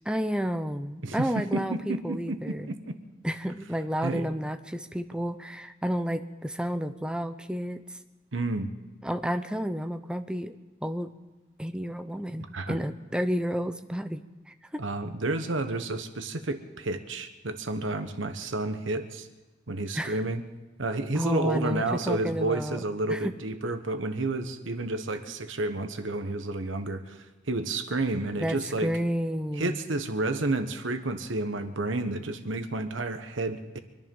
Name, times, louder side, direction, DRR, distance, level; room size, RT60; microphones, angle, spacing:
voice 1, 0.0-2.7 3.2-8.0 9.0-10.5 10.8-11.1 11.6-14.8 19.9-20.2 21.1-22.8 23.1-23.3 28.4-29.8, equal, 5° right, 9 dB, 0.6 m, -31 dB
voice 2, 1.0-2.8 4.0-4.2 8.3-8.7 12.5-12.8 14.8-19.3 19.7-20.4 20.8-28.9 29.6-33.8, right 2 dB, 85° right, 8 dB, 1.3 m, -30 dB
24.5 x 10.5 x 5.5 m, 1.1 s
head